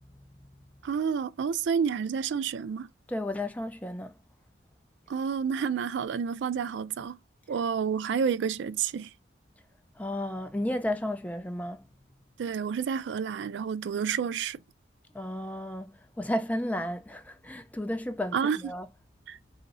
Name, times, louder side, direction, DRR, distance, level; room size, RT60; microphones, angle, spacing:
voice 1, 0.8-2.9 5.1-7.2 7.5-9.1 12.4-14.6 18.3-18.6 19.3-19.4, right 6 dB, 75° right, 0.3 m, -29 dB
voice 2, 3.1-4.1 10.0-11.8 15.1-18.9, left 1 dB, 10° left, 0.4 m, -33 dB
2.9 x 2.6 x 3.9 m
head